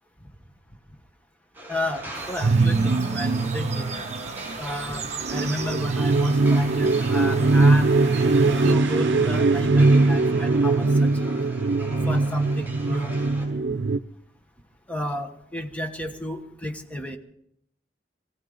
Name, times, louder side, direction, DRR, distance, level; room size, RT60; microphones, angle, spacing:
sound 1, 1.5-13.5, equal, 10° right, 5.8 m, -40 dB
voice 1, 1.7-3.9 4.6-7.9 8.6-11.3 12.1-13.1 14.9-17.2, left 1 dB, 10° left, 4 dB, 1.2 m, -32 dB
sound 2, 2.1-8.7, right 5 dB, 40° right, 1.1 m, -37 dB
sound 3, 2.4-14.0, right 3 dB, 85° right, 0.5 m, -21 dB
21.5 x 16.5 x 4.0 m, 0.71 s
head